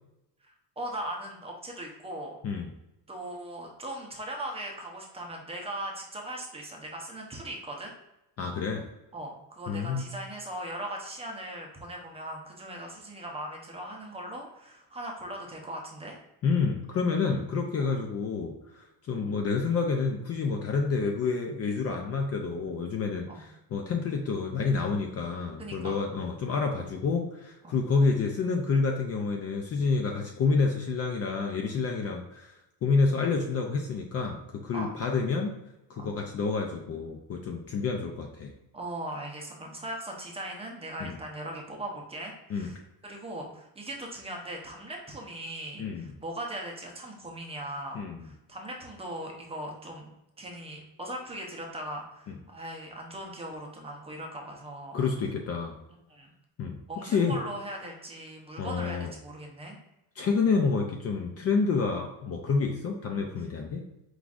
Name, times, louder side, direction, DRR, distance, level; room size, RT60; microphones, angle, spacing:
voice 1, 0.8-2.4 3.1-7.9 9.1-16.2 17.8-17.9 23.3-23.4 25.6-26.0 27.6-27.8 34.7-34.9 36.0-36.2 38.7-42.8 43.0-50.1 50.4-55.0 56.1-56.3 56.9-59.8, right 1 dB, 15° right, 0 dB, 0.6 m, -39 dB
voice 2, 8.4-8.8 9.7-10.1 16.4-32.5 32.8-35.6 35.9-38.5 41.0-41.2 42.5-42.7 45.8-46.1 47.9-48.2 54.9-55.8 56.6-57.4 58.6-59.1 60.2-63.8, left 4 dB, 35° left, 2 dB, 0.4 m, -28 dB
4.7 x 3.8 x 2.4 m, 0.89 s
cardioid pair, 145°, 42 cm